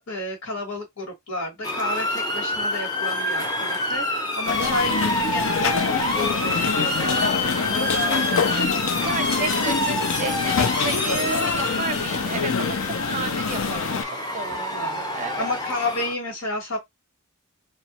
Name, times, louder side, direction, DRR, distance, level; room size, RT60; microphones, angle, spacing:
voice 1, 0.0-9.2 9.4-9.7 14.5-16.8, left 2 dB, 75° left, 1.3 m, -32 dB
Motor vehicle (road) / Siren, 1.6-16.1, left 1 dB, 20° left, 0.7 m, -27 dB
sound 1, 4.5-14.0, left 5 dB, 60° left, 0.5 m, -25 dB
voice 2, 4.5-4.9 8.0-8.5 9.0-14.0 14.3-14.8 15.1-15.5, right 4 dB, 35° right, 0.5 m, -32 dB
3.1 x 2.3 x 2.9 m
head